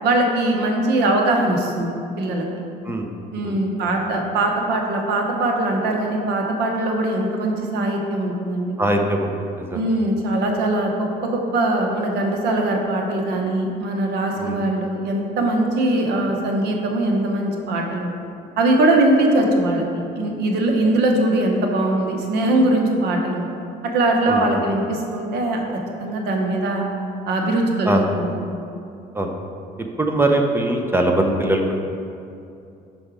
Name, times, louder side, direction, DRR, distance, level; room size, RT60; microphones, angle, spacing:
voice 1, 0.0-2.4 3.3-8.8 9.7-18.1 18.6-19.8 20.1-23.4 23.9-25.6 26.0-26.8 27.3-28.3, right 1 dB, 80° right, 2 dB, 1.0 m, -21 dB
voice 2, 3.4-3.9 8.8-9.9 14.4-14.6 24.3-24.6 27.9-28.0 29.1-29.3 30.0-31.7, right 1 dB, 15° right, 3 dB, 0.5 m, -22 dB
5.3 x 4.9 x 4.7 m, 2.6 s
cardioid pair, 110°, 17 cm